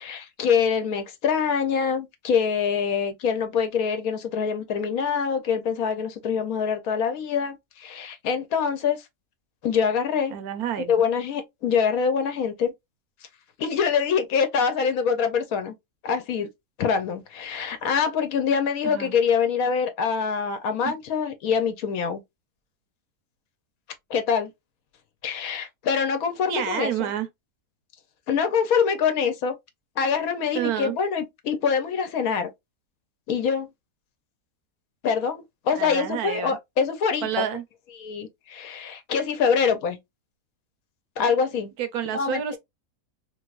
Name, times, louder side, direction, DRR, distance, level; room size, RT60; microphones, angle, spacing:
voice 1, 0.0-9.0 9.6-10.3 10.9-12.7 13.6-15.7 16.0-16.5 16.8-22.2 24.1-24.5 25.2-27.1 28.3-29.5 30.0-32.5 33.3-33.7 35.0-37.4 38.0-40.0 41.2-41.7 42.1-42.6, left 6 dB, 70° left, 1.1 m, -25 dB
voice 2, 10.3-11.0 18.8-19.1 20.8-21.0 26.5-27.3 30.5-31.0 35.7-36.6 37.2-37.6 41.8-42.6, right 9 dB, 75° right, 1.1 m, -29 dB
3.3 x 3.0 x 2.4 m
omnidirectional pair, 1.7 m